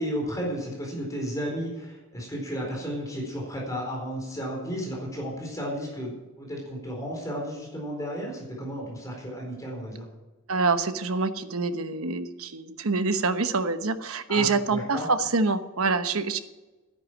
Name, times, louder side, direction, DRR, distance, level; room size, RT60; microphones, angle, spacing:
voice 1, 0.0-10.0 14.3-15.1, equal, 15° left, -1 dB, 4.3 m, -33 dB
voice 2, 10.5-16.4, right 4 dB, 90° right, 9 dB, 1.1 m, -26 dB
12.0 x 10.5 x 6.2 m, 1.1 s
head